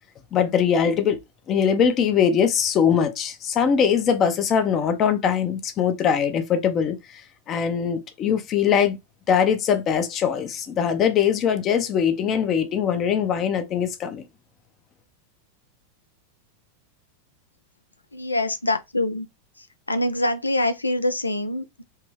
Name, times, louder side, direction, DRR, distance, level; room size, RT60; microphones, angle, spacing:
voice 1, 0.3-1.2 1.5-7.0 7.5-9.0 9.3-14.2, left 7 dB, 30° left, 0.7 m, -21 dB
voice 2, 18.1-19.3 19.6-21.8, left 1 dB, 80° left, 0.5 m, -25 dB
3.4 x 3.0 x 3.2 m
figure-of-eight pair, 90°, 0 cm